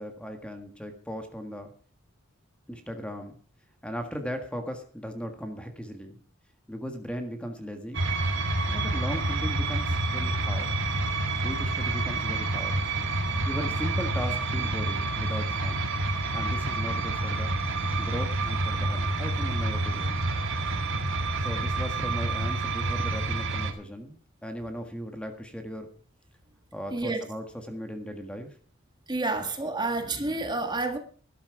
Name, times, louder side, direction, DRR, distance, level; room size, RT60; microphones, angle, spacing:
voice 1, 0.0-1.7 2.7-3.4 3.8-6.2 6.7-8.0 8.7-10.7 11.3-12.8 13.5-15.9 16.3-17.5 18.0-20.3 21.4-25.9 26.7-28.6, equal, 5° left, 1.6 m, -37 dB
sound 1, 7.9-23.7, right 2 dB, 65° right, 1.9 m, -28 dB
voice 2, 26.9-27.2 29.1-31.0, right 2 dB, 20° right, 1.7 m, -29 dB
12.5 x 12.0 x 4.8 m
head